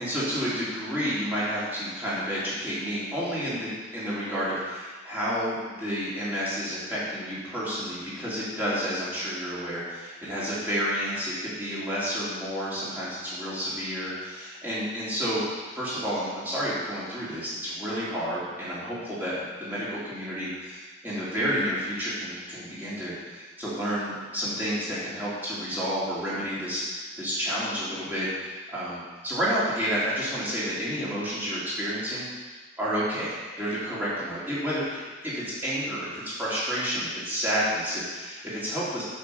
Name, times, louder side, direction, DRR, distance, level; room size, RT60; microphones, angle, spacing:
voice 1, 0.0-15.4 15.7-19.3 19.6-28.3 28.7-32.3 32.8-39.0, equal, 10° right, -10 dB, 3.6 m, -30 dB
8.5 x 6.5 x 7.1 m, 1.4 s
head